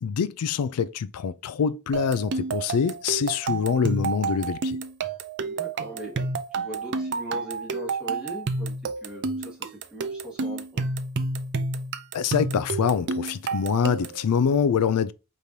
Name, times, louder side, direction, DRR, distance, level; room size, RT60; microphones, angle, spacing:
voice 1, 0.0-4.8 12.1-15.1, left 7 dB, 85° left, 0.4 m, -25 dB
sound 1, 1.9-14.2, right 3 dB, 50° right, 0.5 m, -30 dB
voice 2, 5.4-6.2 6.6-8.7 9.0-10.8, equal, 5° right, 2.1 m, -40 dB
5.1 x 3.2 x 2.7 m
head